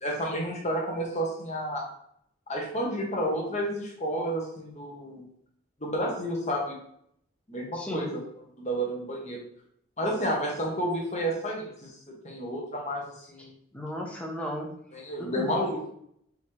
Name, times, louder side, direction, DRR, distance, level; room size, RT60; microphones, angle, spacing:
voice 1, 0.0-1.8 2.5-5.2 5.8-6.8 7.5-8.2 8.6-9.4 10.0-11.9 12.2-13.5 14.9-15.9, equal, 35° left, -2 dB, 1.2 m, -30 dB
voice 2, 7.7-8.1 13.4-14.7 15.2-15.6, equal, 5° left, -1 dB, 0.7 m, -36 dB
5.5 x 2.9 x 3.2 m, 0.69 s
head